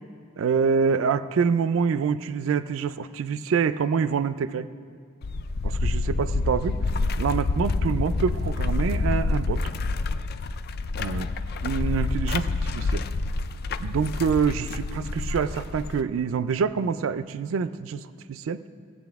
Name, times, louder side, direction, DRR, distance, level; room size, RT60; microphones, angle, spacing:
voice 1, 0.4-4.7 5.6-6.8 7.2-9.6 11.0-11.3 11.6-13.0 13.8-18.6, right 6 dB, 70° right, 14 dB, 0.3 m, -26 dB
sound 1, 5.2-16.0, left 3 dB, 50° left, 0.4 m, -27 dB
18.0 x 8.2 x 3.5 m, 2.3 s
head